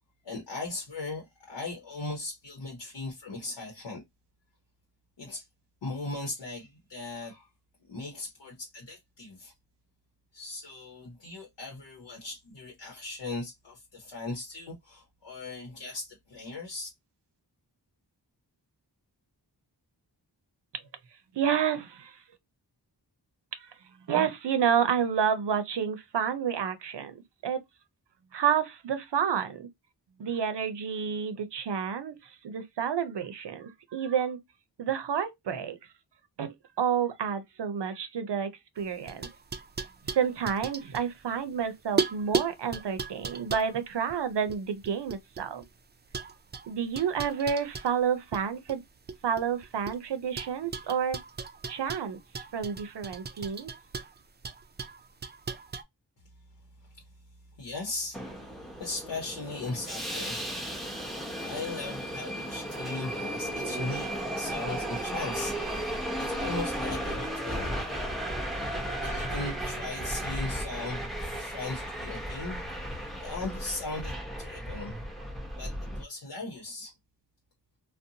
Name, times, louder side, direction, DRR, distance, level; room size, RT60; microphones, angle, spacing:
voice 1, 0.2-4.0 5.2-5.5 5.8-7.5 7.9-9.5 10.3-16.9 56.9-57.0 57.6-58.2 58.8-60.5 60.8-68.0 69.0-75.0 75.6-76.9, left 3 dB, 90° left, 0.8 m, -38 dB
voice 2, 21.3-22.2 23.6-23.7 24.1-27.2 27.4-27.6 28.3-29.7 30.2-34.4 34.8-35.8 36.4-38.5 38.8-39.3 40.1-45.6 46.7-48.8 49.2-51.2 51.7-52.2 52.5-53.7, right 7 dB, 75° right, 0.6 m, -29 dB
sound 1, 38.8-41.6 42.0-45.7 46.1-48.4 48.7-50.0 50.4-55.8, right 5 dB, 25° right, 0.4 m, -36 dB
Subway metro underground, 58.1-76.0, right 1 dB, ahead, 0.7 m, -35 dB
2.6 x 2.1 x 2.7 m
wide cardioid pair, 50°, 42 cm